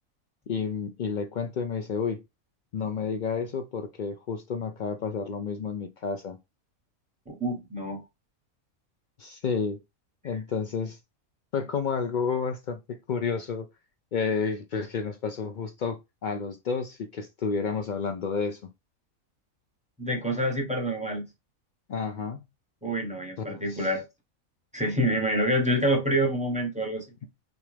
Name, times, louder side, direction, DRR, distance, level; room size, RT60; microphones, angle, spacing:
voice 1, 0.5-2.2 2.7-6.4 9.2-9.8 10.2-11.0 11.5-13.7 14.1-18.7 21.9-22.4 23.4-23.9 25.4-25.5, left 5 dB, 90° left, 0.4 m, -31 dB
voice 2, 7.3-8.0 20.0-21.2 22.8-24.0 24.7-27.0, right 1 dB, 5° right, 1.0 m, -27 dB
6.1 x 2.5 x 3.3 m
omnidirectional pair, 1.5 m